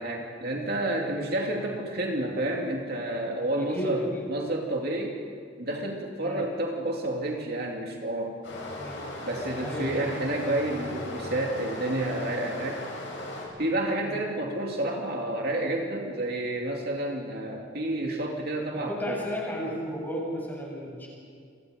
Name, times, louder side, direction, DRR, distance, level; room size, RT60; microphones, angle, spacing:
voice 1, 0.0-5.2 5.6-8.4 9.2-12.8 13.6-19.2, right 1 dB, 55° right, 0 dB, 2.6 m, -30 dB
voice 2, 3.6-4.3 6.2-6.4 8.8-9.0 9.6-10.1 14.0-14.2 18.7-21.1, equal, 10° left, -3 dB, 7.6 m, -34 dB
Stream, 8.4-13.5, left 1 dB, 75° left, 7.6 m, -37 dB
30.0 x 24.5 x 5.2 m, 2.2 s
head